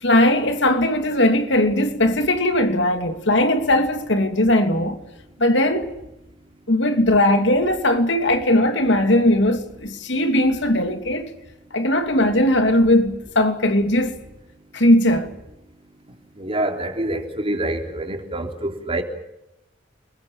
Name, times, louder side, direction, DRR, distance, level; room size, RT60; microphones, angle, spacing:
voice 1, 0.0-5.0 5.4-5.9 6.7-11.3 11.7-14.1 14.7-15.3, left 1 dB, 65° left, 2.9 m, -19 dB
voice 2, 16.4-19.0, right 1 dB, 30° right, 3.7 m, -26 dB
29.0 x 22.0 x 7.3 m
head